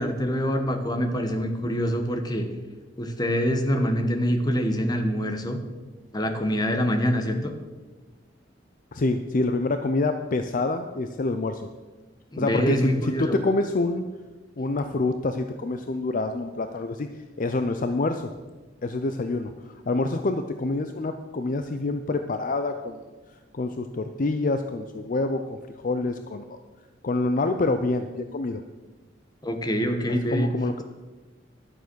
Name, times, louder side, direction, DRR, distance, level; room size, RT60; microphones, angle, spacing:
voice 1, 0.0-2.5 3.0-5.6 6.1-7.5 12.3-13.4 29.4-30.5, equal, 20° left, 5 dB, 1.1 m, -25 dB
voice 2, 8.9-11.7 12.4-14.1 14.6-17.1 17.4-18.3 18.8-23.0 23.5-25.6 25.8-26.6 27.0-28.6 30.3-30.8, left 2 dB, 45° left, 8 dB, 0.5 m, -27 dB
11.5 x 7.0 x 6.2 m, 1.3 s
head